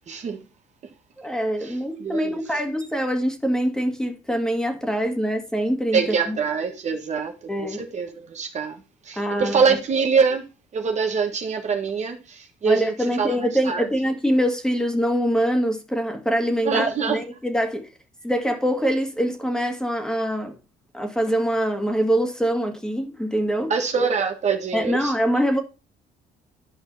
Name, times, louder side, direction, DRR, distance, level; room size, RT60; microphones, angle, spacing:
voice 1, 0.1-0.4 0.8-0.9 1.6-2.4 5.9-10.5 10.7-13.9 16.6-17.2 23.7-25.1, right 5 dB, 45° right, 1.5 m, -24 dB
voice 2, 1.2-6.4 7.5-7.8 9.1-9.6 12.7-17.9 18.2-20.6 20.9-23.7 24.7-25.6, equal, 5° left, 2.1 m, -24 dB
11.0 x 5.4 x 4.1 m
cardioid pair, 110°, 17 cm